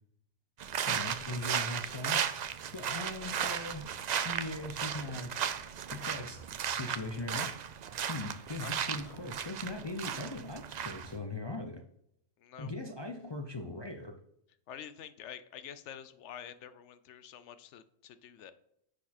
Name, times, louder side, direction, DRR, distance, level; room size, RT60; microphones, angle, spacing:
sound 1, 0.6-11.2, right 8 dB, 70° right, 0.4 m, -35 dB
voice 1, 0.9-2.2 2.7-3.9 4.2-5.3 5.9-7.5 8.1-11.8 12.6-14.2, left 2 dB, 45° left, 0.3 m, -40 dB
voice 2, 8.6-9.2 12.4-12.7 14.7-18.5, left 9 dB, 75° left, 0.9 m, -48 dB
9.7 x 4.3 x 4.2 m
omnidirectional pair, 1.3 m